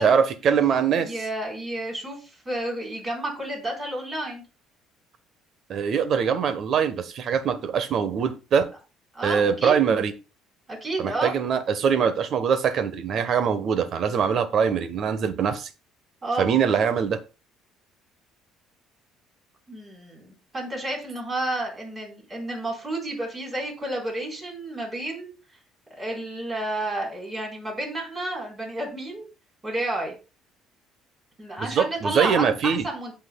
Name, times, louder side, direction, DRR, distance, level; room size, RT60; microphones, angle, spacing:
voice 1, 0.0-1.1 5.7-8.7 9.2-10.1 11.0-15.7 16.4-17.2 31.6-32.9, right 7 dB, 45° right, 12 dB, 1.1 m, -23 dB
voice 2, 1.0-4.4 9.1-9.8 10.7-11.3 16.2-16.5 19.7-25.3 26.0-29.3 29.6-30.1 31.4-33.1, right 1 dB, 20° right, 0 dB, 4.2 m, -31 dB
16.5 x 5.7 x 2.3 m, 0.31 s
cardioid pair, 140°, 0 cm